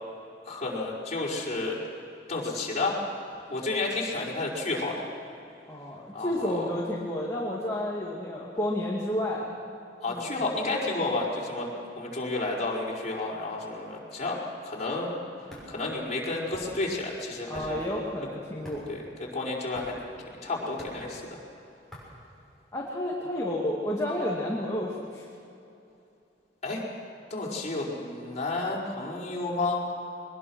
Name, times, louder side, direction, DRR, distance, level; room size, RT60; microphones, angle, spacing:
voice 1, 0.5-1.8 2.3-3.0 3.5-5.0 6.1-6.8 10.0-11.7 11.9-14.4 14.6-15.2 15.7-17.8 18.9-19.9 20.4-21.4 26.6-26.8 27.3-29.8, left 2 dB, 40° left, -4 dB, 4.9 m, -31 dB
voice 2, 5.7-9.6 10.1-10.3 17.5-18.9 22.7-25.3, left 1 dB, 20° left, -5 dB, 2.5 m, -31 dB
sound 1, 15.3-23.0, equal, ahead, 6.6 m, -47 dB
22.5 x 21.5 x 6.4 m, 2.7 s
head